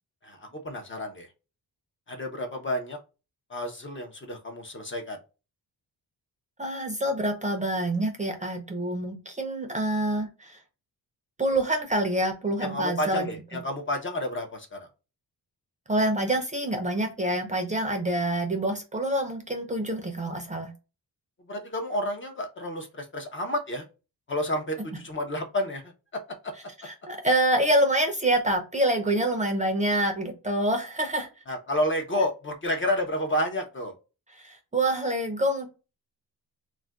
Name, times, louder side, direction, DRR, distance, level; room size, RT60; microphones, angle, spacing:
voice 1, 0.2-1.3 2.1-3.0 3.5-5.2 12.6-14.9 21.5-23.8 24.3-26.5 31.5-33.9, left 1 dB, 30° left, 4 dB, 0.6 m, -30 dB
voice 2, 6.6-10.6 11.4-13.3 15.9-20.7 26.8-31.3 34.4-35.7, right 1 dB, 20° right, 3 dB, 0.5 m, -26 dB
2.5 x 2.1 x 3.3 m, 0.31 s
cardioid pair, 105°, 40 cm